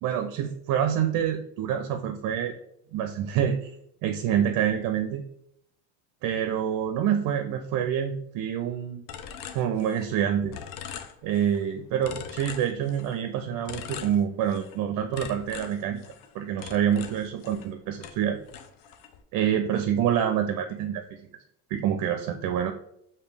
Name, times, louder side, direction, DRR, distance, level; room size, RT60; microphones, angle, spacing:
voice 1, 0.0-2.6 2.9-3.7 4.0-5.2 6.2-9.0 9.5-10.6 11.2-16.0 16.3-18.4 19.3-21.0 21.7-22.7, right 9 dB, 60° right, 6 dB, 0.5 m, -27 dB
sound 1, 9.1-10.2 10.5-11.6 12.0-13.2 13.7-14.8 15.1-17.7 18.0-19.2, left 8 dB, 65° left, 0.6 m, -42 dB
4.9 x 2.8 x 3.3 m, 0.72 s
supercardioid pair, 85°, 37 cm